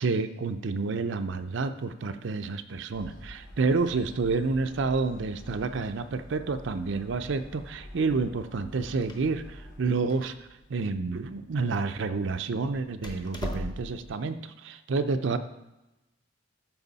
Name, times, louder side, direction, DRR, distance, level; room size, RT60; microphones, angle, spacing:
voice 1, 0.0-10.3 10.7-15.4, right 4 dB, 65° right, 10 dB, 0.5 m, -29 dB
sound 1, 2.9-10.0, equal, 80° left, 2.2 m, -47 dB
Door, 8.5-14.1, equal, 20° left, 0.9 m, -42 dB
12.5 x 4.8 x 4.0 m, 0.99 s
head